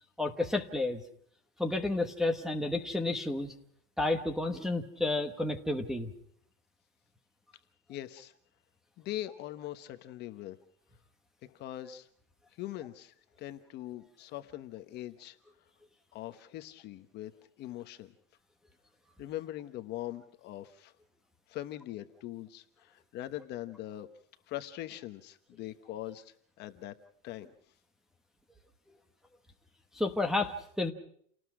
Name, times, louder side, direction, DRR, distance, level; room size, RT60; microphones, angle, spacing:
voice 1, 0.2-1.0 1.6-3.5 4.0-6.1 29.9-30.9, left 2 dB, ahead, 1 dB, 1.0 m, -31 dB
voice 2, 7.9-8.3 9.0-10.6 11.4-12.1 12.6-15.4 16.1-17.3 17.6-18.1 19.2-20.9 21.5-24.1 24.5-26.9 27.2-27.5, left 14 dB, 30° left, 9 dB, 1.0 m, -42 dB
29.5 x 19.0 x 4.8 m, 0.63 s
supercardioid pair, 170°, 35 cm